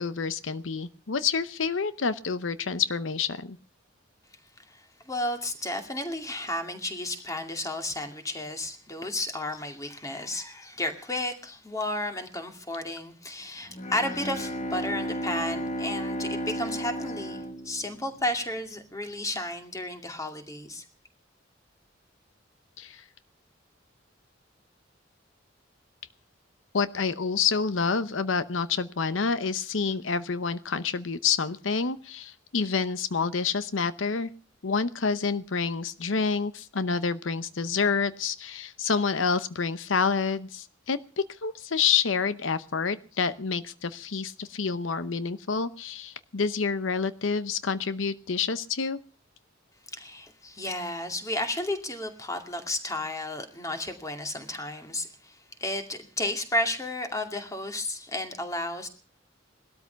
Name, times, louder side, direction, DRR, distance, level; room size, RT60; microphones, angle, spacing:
voice 1, 0.0-3.6 22.8-23.0 26.7-34.3 34.6-49.0, left 5 dB, 85° left, 0.8 m, -28 dB
voice 2, 4.7-20.8 49.9-58.9, left 1 dB, 15° left, 2.4 m, -33 dB
Bowed string instrument, 13.7-18.6, equal, 40° left, 1.7 m, -34 dB
19.0 x 13.0 x 5.7 m
head